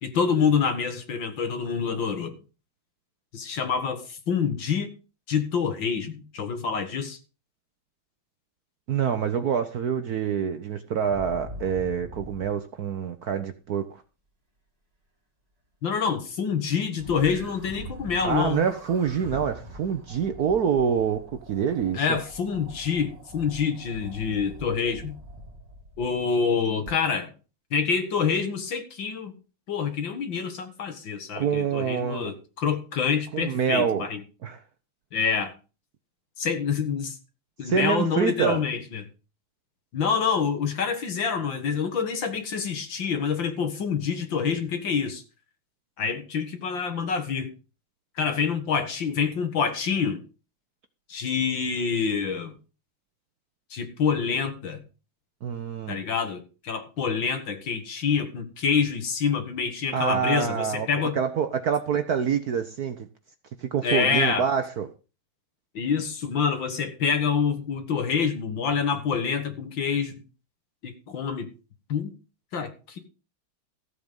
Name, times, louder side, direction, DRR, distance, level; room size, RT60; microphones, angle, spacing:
voice 1, 0.0-2.4 3.3-4.9 5.3-7.2 15.8-18.6 21.9-25.2 26.0-27.3 27.7-29.3 29.7-34.2 35.1-35.5 36.4-37.2 37.6-39.0 39.9-45.2 46.0-47.5 48.2-50.2 51.1-52.5 53.7-54.8 55.9-61.1 63.8-64.5 65.7-70.2 70.8-71.5 71.9-72.1 72.5-73.0, left 6 dB, 60° left, 2.4 m, -27 dB
voice 2, 8.9-13.9 18.2-21.2 21.5-22.2 31.4-32.3 33.3-34.1 34.4-34.6 37.6-38.6 55.4-56.0 59.9-60.9 61.2-63.1 63.6-64.9, right 7 dB, 60° right, 1.1 m, -26 dB
sound 1, 11.0-12.5 17.0-26.2 26.9-27.0, equal, 20° right, 2.1 m, -43 dB
14.5 x 7.7 x 5.3 m
omnidirectional pair, 2.3 m